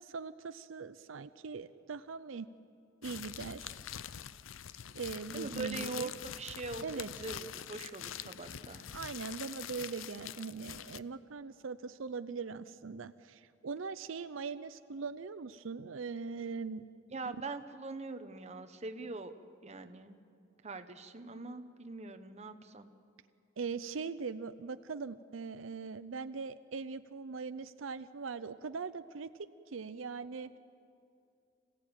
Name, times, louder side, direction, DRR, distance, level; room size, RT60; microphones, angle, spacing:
voice 1, 0.0-2.5 3.0-3.7 4.9-6.1 6.8-7.1 8.9-16.8 23.6-30.5, right 5 dB, 80° right, 12 dB, 0.6 m, -41 dB
sound 1, 3.0-11.0, left 9 dB, 80° left, 0.6 m, -45 dB
voice 2, 5.3-8.8 17.1-19.3 19.6-20.2 20.6-22.9, right 3 dB, 35° right, 8 dB, 1.1 m, -42 dB
26.5 x 16.5 x 8.9 m, 2.6 s
head